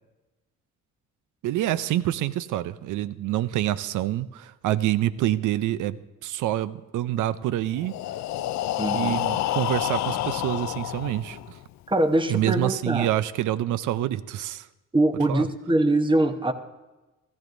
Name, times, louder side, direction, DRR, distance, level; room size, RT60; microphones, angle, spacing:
voice 1, 1.4-7.9 8.9-11.4 12.3-14.7 15.3-15.4, right 13 dB, 85° right, 15 dB, 0.6 m, -27 dB
Breathing, 7.8-11.6, left 13 dB, 65° left, 0.4 m, -29 dB
voice 2, 8.8-9.2 11.9-13.1 14.9-16.5, right 2 dB, 15° right, 7 dB, 1.0 m, -23 dB
16.0 x 13.5 x 2.6 m, 1.1 s
cardioid pair, 90°, 30 cm